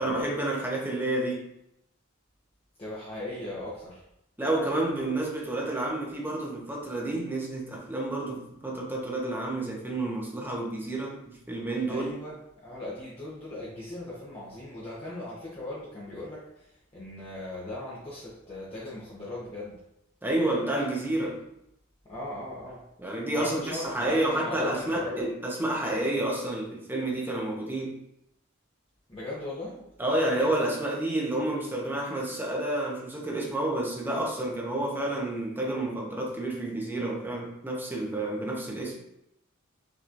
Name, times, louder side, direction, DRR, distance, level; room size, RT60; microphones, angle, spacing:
voice 1, 0.0-1.5 4.4-12.1 20.2-21.4 23.0-28.0 30.0-39.0, right 1 dB, 10° right, -2 dB, 0.8 m, -30 dB
voice 2, 2.8-4.0 11.9-19.8 22.1-22.8 23.3-25.2 29.1-29.9, left 1 dB, 25° left, -9 dB, 0.9 m, -38 dB
6.0 x 3.0 x 2.6 m, 0.80 s
head